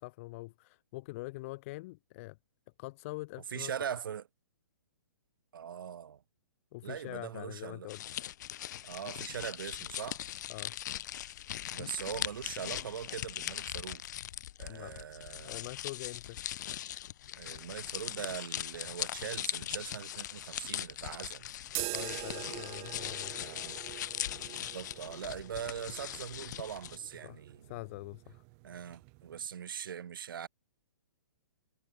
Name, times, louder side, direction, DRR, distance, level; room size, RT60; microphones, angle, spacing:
voice 1, 0.0-2.4 2.8-3.7 6.7-8.0 10.5-10.7 14.7-15.0 15.4-16.4 21.9-23.5 27.2-28.4, left 21 dB, 35° left, 0.9 m, -44 dB
voice 2, 3.5-4.3 5.5-6.2 6.8-7.9 8.8-10.2 11.7-14.0 14.6-15.7 17.4-21.5 23.4-23.8 24.3-27.7 28.6-30.5, right 8 dB, 70° right, 2.4 m, -41 dB
sound 1, 7.9-27.0, left 12 dB, 50° left, 1.7 m, -40 dB
sound 2, 21.7-29.5, right 37 dB, 25° right, 0.5 m, -45 dB
hypercardioid pair, 140°, 12 cm